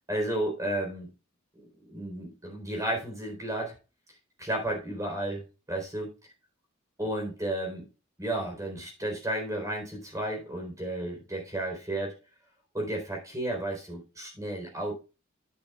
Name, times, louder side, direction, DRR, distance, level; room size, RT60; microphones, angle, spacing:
voice 1, 0.1-1.1 1.6-3.7 4.4-5.4 5.7-6.1 7.0-7.9 8.2-12.1 12.7-14.9, right 1 dB, 15° right, 1 dB, 4.1 m, -32 dB
10.5 x 10.0 x 2.4 m, 0.30 s
head